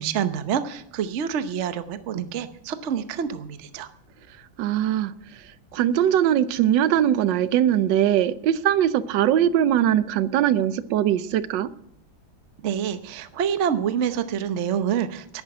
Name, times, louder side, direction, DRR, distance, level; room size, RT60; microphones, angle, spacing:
voice 1, 0.0-3.9 12.6-15.4, right 8 dB, 50° right, 11 dB, 0.9 m, -27 dB
voice 2, 4.6-5.1 5.7-11.7, right 10 dB, 75° right, 16 dB, 1.3 m, -21 dB
11.0 x 9.8 x 8.5 m, 0.74 s
omnidirectional pair, 2.1 m